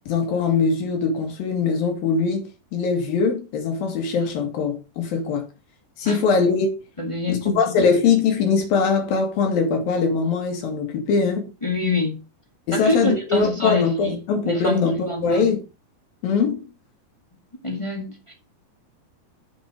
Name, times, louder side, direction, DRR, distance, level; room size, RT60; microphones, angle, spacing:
voice 1, 0.1-5.5 6.0-6.7 7.3-11.5 12.7-15.6 16.2-16.7, left 5 dB, 85° left, 3.8 m, -22 dB
voice 2, 7.0-7.6 11.6-12.2 12.7-14.2 14.4-14.8 15.1-15.4 17.6-18.3, left 3 dB, 20° left, 0.9 m, -25 dB
7.8 x 5.9 x 4.9 m
omnidirectional pair, 4.1 m